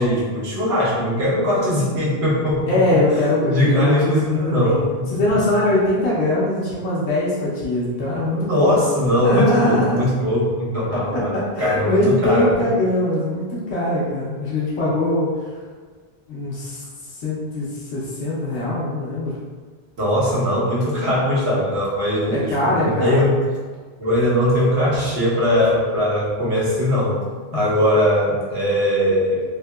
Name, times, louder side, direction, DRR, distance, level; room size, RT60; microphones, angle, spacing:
voice 1, 0.0-3.0 3.5-5.4 8.3-12.7 20.0-23.4 24.0-27.2 27.5-29.4, left 1 dB, 75° right, -7 dB, 1.2 m, -20 dB
voice 2, 2.7-4.8 5.1-8.7 9.2-10.0 11.1-15.3 16.3-16.8 17.2-19.4 22.3-23.3 27.5-27.7, left 1 dB, 85° left, -7 dB, 0.9 m, -22 dB
3.1 x 2.7 x 2.2 m, 1.5 s
omnidirectional pair, 1.1 m